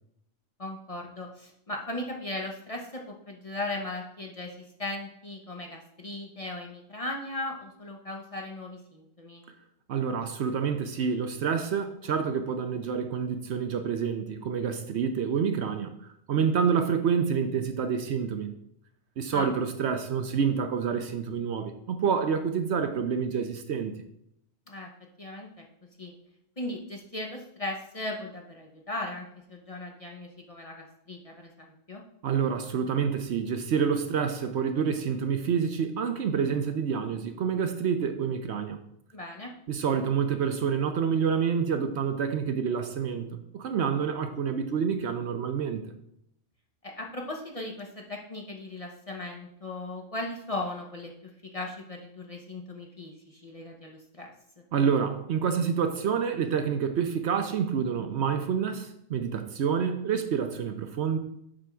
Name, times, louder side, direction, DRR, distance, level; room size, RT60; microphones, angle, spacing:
voice 1, 0.6-9.4 19.3-19.5 24.7-24.9 25.2-25.6 26.0-26.1 26.6-32.0 39.1-39.5 46.8-54.3, left 2 dB, 35° left, 0.7 m, -37 dB
voice 2, 9.9-18.5 19.2-24.0 32.2-38.8 39.7-45.8 54.7-61.2, right 6 dB, 65° right, 0.8 m, -28 dB
7.5 x 3.5 x 6.1 m
omnidirectional pair, 1.3 m